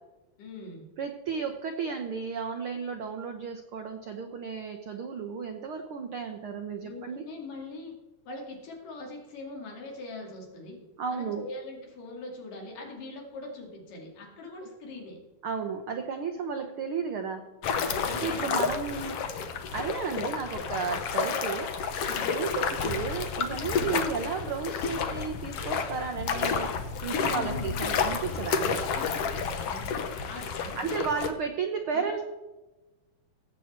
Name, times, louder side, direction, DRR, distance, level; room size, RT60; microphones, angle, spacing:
voice 1, 0.4-0.9 6.8-8.0 8.3-10.8 11.1-15.2 17.9-18.5 22.1-22.5 27.2-27.8 29.6-31.1 31.9-32.2, left 2 dB, 80° left, 0 dB, 4.1 m, -42 dB
voice 2, 1.0-7.2 11.0-11.5 15.4-17.4 18.1-19.2 19.7-26.7 27.0-28.9 30.8-32.2, right 5 dB, 75° right, 5 dB, 1.2 m, -33 dB
sound 1, 17.6-31.3, left 6 dB, 65° left, 1.6 m, -30 dB
17.5 x 8.0 x 4.4 m, 1.1 s
omnidirectional pair, 3.7 m